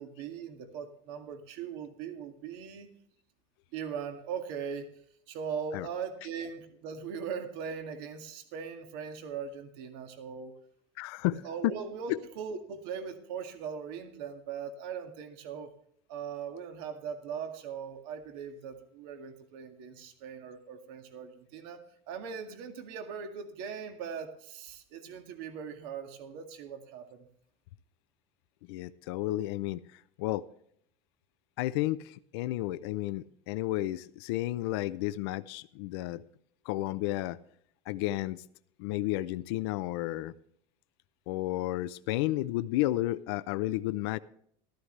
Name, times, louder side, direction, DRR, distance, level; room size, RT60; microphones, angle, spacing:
voice 1, 0.0-2.9 3.7-4.9 5.3-10.6 11.3-15.7 16.1-21.8 22.1-27.3, right 6 dB, 70° right, 2.0 m, -40 dB
voice 2, 11.0-11.7 12.1-12.2 28.7-29.8 30.2-30.4 31.6-36.2 36.7-37.4 37.9-38.4 38.8-40.3 41.3-44.2, left 16 dB, 80° left, 0.6 m, -32 dB
14.0 x 13.0 x 3.3 m
cardioid pair, 155°, 13 cm